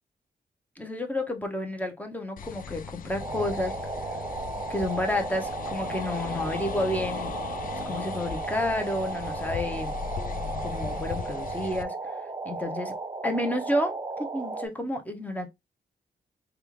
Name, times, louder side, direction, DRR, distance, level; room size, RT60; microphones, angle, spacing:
voice 1, 0.8-3.8 4.7-7.3 7.8-10.0 10.6-12.2 12.4-12.9 13.2-15.5, left 1 dB, 10° left, 0.9 m, -30 dB
sound 1, 2.4-11.8, left 7 dB, 55° left, 0.4 m, -38 dB
sound 2, 3.2-14.7, right 3 dB, 25° right, 0.6 m, -35 dB
3.3 x 2.4 x 3.0 m
cardioid pair, 70°, 17 cm